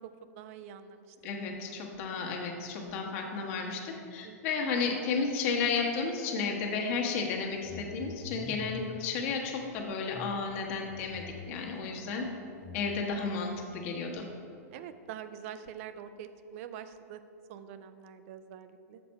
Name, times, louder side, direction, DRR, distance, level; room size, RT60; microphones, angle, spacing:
voice 1, 0.0-1.2 4.2-4.4 11.7-11.9 14.7-17.2 17.5-19.0, right 9 dB, 55° right, 11 dB, 0.5 m, -45 dB
voice 2, 1.2-12.3 12.7-14.2, left 5 dB, 50° left, 1 dB, 1.3 m, -33 dB
sound 1, 7.4-9.1 10.0-11.7 12.6-13.0, left 4 dB, 15° left, 0.4 m, -46 dB
7.4 x 4.3 x 5.7 m, 2.6 s
hypercardioid pair, 120°, 9 cm